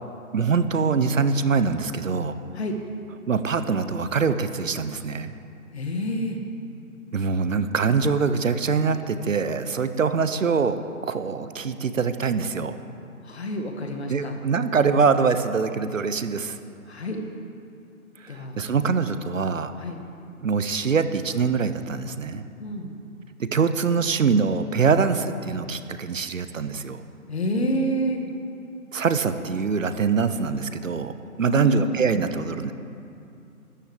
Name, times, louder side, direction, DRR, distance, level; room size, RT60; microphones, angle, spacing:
voice 1, 0.3-2.4 3.3-5.3 7.1-12.8 14.1-16.6 18.2-19.7 20.4-22.5 23.4-27.0 28.9-32.7, right 5 dB, 60° right, 11 dB, 1.0 m, -24 dB
voice 2, 5.7-6.4 13.2-14.4 16.9-17.2 18.3-18.6 19.8-20.0 22.6-23.0 27.3-28.2 31.4-31.9, equal, 45° left, 3 dB, 1.9 m, -28 dB
13.0 x 10.5 x 8.4 m, 2.6 s
hypercardioid pair, 180°, 44 cm